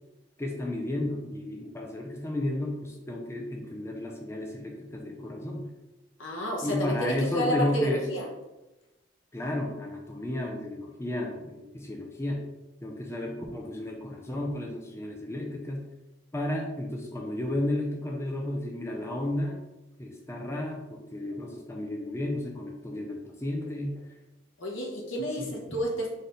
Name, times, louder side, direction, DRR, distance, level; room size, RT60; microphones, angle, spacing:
voice 1, 0.4-5.7 6.6-8.1 9.3-12.4 12.8-15.9 16.3-19.6 20.0-24.1 25.3-25.8, left 1 dB, 15° left, -1 dB, 0.5 m, -33 dB
voice 2, 6.2-8.3 24.6-26.1, equal, 85° left, 0 dB, 1.0 m, -30 dB
4.1 x 3.4 x 3.8 m, 1.0 s
head